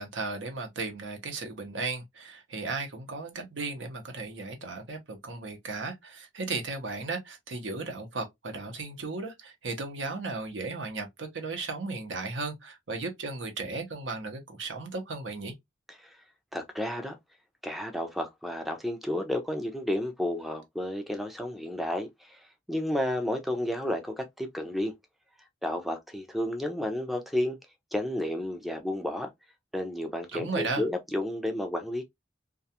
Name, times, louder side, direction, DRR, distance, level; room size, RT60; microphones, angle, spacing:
voice 1, 0.0-15.5 30.3-30.9, right 3 dB, 85° right, 0.8 m, -35 dB
voice 2, 16.5-17.2 17.6-22.4 22.7-24.9 25.6-27.6 27.9-29.3 29.7-32.0, left 1 dB, ahead, 0.3 m, -31 dB
2.4 x 2.2 x 2.7 m
head